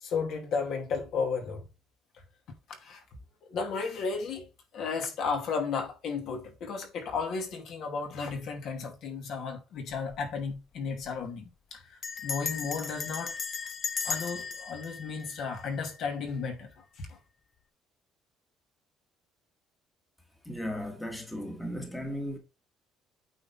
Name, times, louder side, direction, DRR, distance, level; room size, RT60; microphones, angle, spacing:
voice 1, 0.0-1.6 2.8-3.0 3.5-4.5 4.7-13.3 14.0-16.7 17.0-17.2, left 5 dB, 55° left, 2.4 m, -34 dB
Bell, 9.9-10.3 10.5-10.6 10.9-11.2 12.0-16.1, left 5 dB, 35° left, 0.7 m, -36 dB
voice 2, 20.4-22.4, equal, 5° left, 1.5 m, -36 dB
8.8 x 4.0 x 4.2 m
cardioid pair, 145°, 0 cm